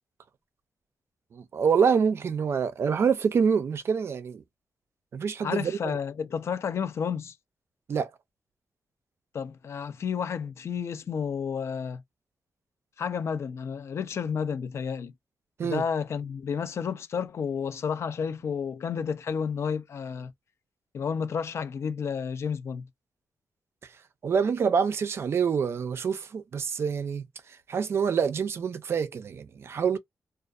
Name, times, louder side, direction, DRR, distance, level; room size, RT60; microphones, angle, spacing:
voice 1, 1.3-4.4 5.1-6.0 7.9-8.1 15.6-15.8 24.2-27.2 27.7-30.0, right 6 dB, 50° right, 0.4 m, -26 dB
voice 2, 5.4-7.4 9.3-12.0 13.0-15.1 15.6-20.3 20.9-22.9, left 6 dB, 55° left, 0.4 m, -31 dB
2.5 x 2.3 x 2.3 m
wide cardioid pair, 155°, 5 cm